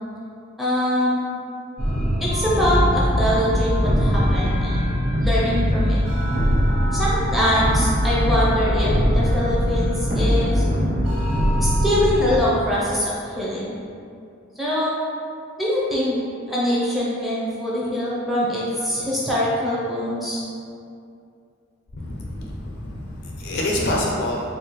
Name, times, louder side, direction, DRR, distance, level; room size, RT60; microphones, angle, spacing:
voice 1, 0.6-1.2 2.2-4.9 5.2-6.0 6.9-10.6 11.6-13.7 14.6-14.9 15.6-16.1 16.5-20.4, equal, ahead, -8 dB, 0.6 m, -23 dB
sound 1, 1.8-12.4, equal, 45° right, 1.2 m, -21 dB
voice 2, 21.9-24.4, left 1 dB, 55° left, -2 dB, 0.5 m, -26 dB
4.2 x 2.3 x 3.1 m, 2.5 s
head